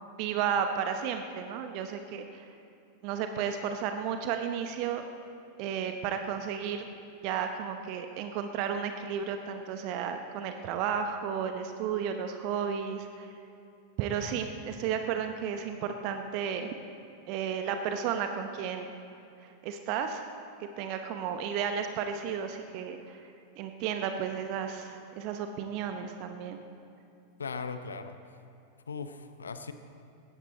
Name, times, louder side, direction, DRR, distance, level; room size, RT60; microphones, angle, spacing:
voice 1, 0.2-2.5 3.0-5.0 5.6-6.9 7.2-13.3 14.0-16.7 17.3-18.9 19.4-20.3 20.6-23.2 23.6-26.6, right 7 dB, 45° right, 6 dB, 0.8 m, -33 dB
voice 2, 27.4-28.2 28.9-29.7, left 5 dB, 70° left, 10 dB, 0.7 m, -38 dB
18.5 x 14.5 x 4.2 m, 2.6 s
figure-of-eight pair, 90°, 0 cm